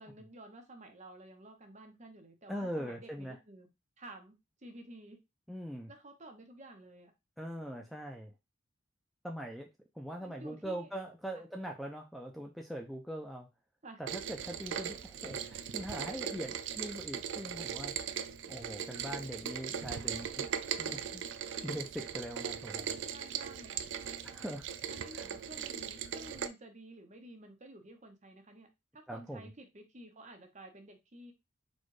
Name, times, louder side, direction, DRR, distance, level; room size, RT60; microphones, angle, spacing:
voice 1, 0.0-3.7 4.0-5.2 5.9-7.1 10.2-10.9 11.3-11.4 13.8-14.0 20.1-20.4 22.8-24.6 24.9-28.7 28.9-31.3, right 1 dB, 35° right, 4 dB, 0.9 m, -52 dB
voice 2, 2.5-3.4 5.5-5.9 7.4-8.3 9.2-9.7 9.9-13.5 14.0-18.0 18.5-20.5 20.8-22.9 24.2-24.7 25.1-25.3 29.1-29.4, equal, ahead, 2 dB, 0.4 m, -42 dB
Rain, 14.1-26.5, right 8 dB, 65° right, 0.4 m, -39 dB
4.2 x 2.4 x 4.7 m, 0.23 s
head